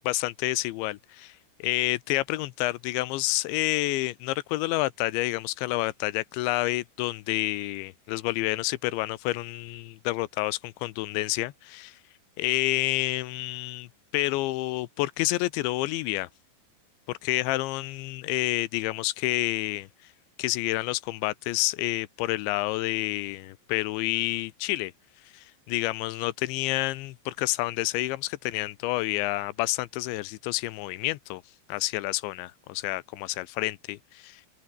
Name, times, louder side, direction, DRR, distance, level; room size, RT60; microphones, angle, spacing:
voice 1, 0.0-12.0 12.4-13.9 14.1-16.3 17.1-19.9 20.4-24.9 25.3-31.4 31.7-34.5, left 18 dB, 90° left, 3.3 m, -29 dB
open air
omnidirectional pair, 5.1 m